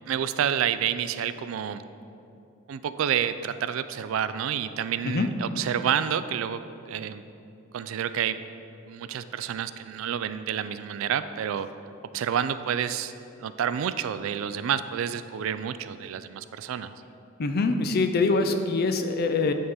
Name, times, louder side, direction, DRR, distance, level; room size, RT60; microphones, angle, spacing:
voice 1, 0.1-1.8 2.7-6.6 6.9-7.2 7.7-8.4 8.9-11.7 12.1-13.1 13.4-16.9, right 8 dB, 70° right, 13 dB, 0.3 m, -29 dB
voice 2, 17.4-19.5, left 3 dB, 50° left, 7 dB, 0.5 m, -24 dB
9.5 x 3.7 x 5.5 m, 2.7 s
head